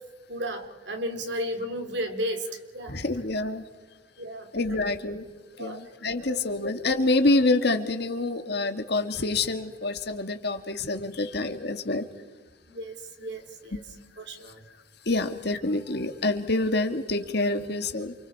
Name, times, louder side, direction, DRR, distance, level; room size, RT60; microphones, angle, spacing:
voice 1, 0.3-3.0 4.2-4.8 5.6-5.8 6.3-6.4 12.7-13.8 14.2-14.6, equal, 60° right, 6 dB, 3.1 m, -34 dB
voice 2, 2.9-3.6 4.5-5.3 5.6-12.1 13.7-13.8 15.0-18.1, left 2 dB, 55° left, 7 dB, 1.9 m, -27 dB
29.0 x 28.0 x 4.8 m, 1.3 s
head